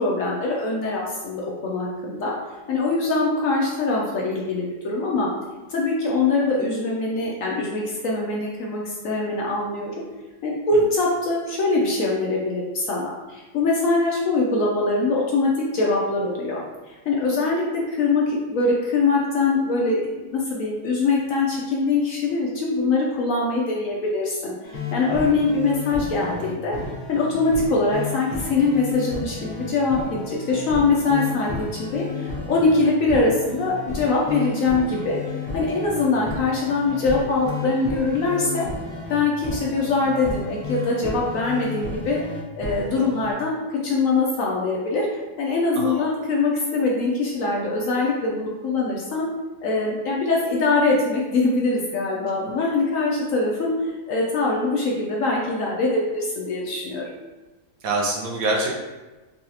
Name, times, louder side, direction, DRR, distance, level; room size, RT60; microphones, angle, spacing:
voice 1, 0.0-2.3 2.7-5.3 5.7-9.9 10.4-26.7 27.1-35.2 35.5-38.7 39.1-42.2 42.5-45.1 45.4-49.3 49.6-57.1, left 3 dB, 70° left, -3 dB, 0.8 m, -23 dB
sound 1, 24.6-43.3, left 3 dB, 85° left, 0.4 m, -33 dB
voice 2, 57.8-58.7, right 2 dB, 70° right, -1 dB, 0.9 m, -25 dB
3.9 x 2.3 x 2.8 m, 1.2 s
omnidirectional pair, 1.7 m